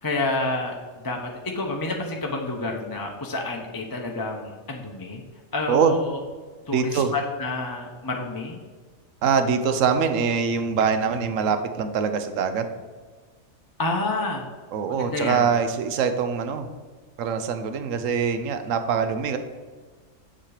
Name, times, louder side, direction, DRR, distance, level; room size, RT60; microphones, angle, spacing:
voice 1, 0.0-5.2 5.5-6.2 6.7-8.6 13.8-14.5 15.0-15.5, left 2 dB, 20° left, 0 dB, 0.8 m, -29 dB
voice 2, 6.7-7.1 9.2-12.7 14.7-16.7 17.2-19.4, right 6 dB, 70° right, 9 dB, 1.1 m, -23 dB
7.6 x 7.3 x 5.0 m, 1.5 s
omnidirectional pair, 1.4 m